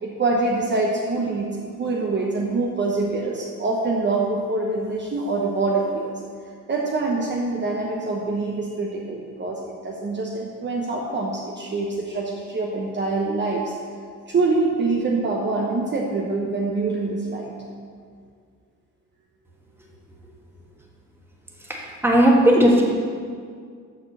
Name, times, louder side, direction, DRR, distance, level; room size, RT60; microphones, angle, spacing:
voice 1, 0.0-6.1 6.7-13.7 14.3-17.5, right 3 dB, 35° right, -2 dB, 0.9 m, -25 dB
voice 2, 21.6-22.8, equal, 5° right, -2 dB, 1.4 m, -17 dB
6.7 x 6.7 x 6.7 m, 2.1 s
cardioid pair, 135°, 33 cm